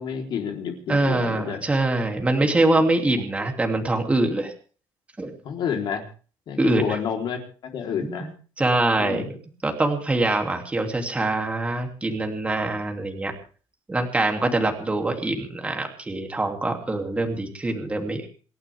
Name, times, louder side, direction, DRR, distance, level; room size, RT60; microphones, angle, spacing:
voice 1, 0.0-1.6 2.4-2.7 5.4-6.1 6.5-7.4 7.7-8.3 9.0-9.4 14.4-14.6, left 7 dB, 55° left, 2 dB, 4.1 m, -30 dB
voice 2, 0.9-4.5 5.2-5.3 6.6-7.0 8.0-8.3 8.6-9.4 9.6-13.3 13.9-18.3, right 2 dB, 15° right, 3 dB, 2.9 m, -24 dB
28.0 x 11.5 x 3.6 m, 0.39 s
cardioid pair, 145°, 9 cm